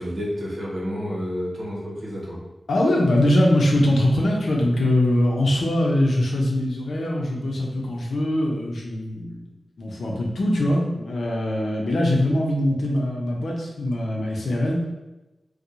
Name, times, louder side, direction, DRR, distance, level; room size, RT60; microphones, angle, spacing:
voice 1, 0.0-2.4, equal, 45° right, -4 dB, 1.0 m, -30 dB
voice 2, 2.7-9.4 9.8-14.8, left 1 dB, 75° left, -2 dB, 0.7 m, -22 dB
4.4 x 2.3 x 2.6 m, 1.0 s
wide cardioid pair, 135°, 0 cm